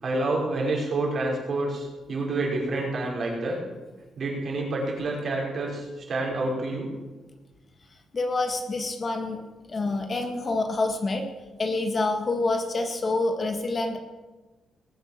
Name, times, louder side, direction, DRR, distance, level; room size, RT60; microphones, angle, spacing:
voice 1, 0.0-3.6 4.2-6.9, right 2 dB, 50° right, -2 dB, 5.4 m, -28 dB
voice 2, 8.1-9.4 9.7-11.3 11.6-14.0, left 2 dB, 35° left, 5 dB, 1.7 m, -27 dB
19.5 x 8.6 x 7.5 m, 1.2 s
cardioid pair, 125°, 0 cm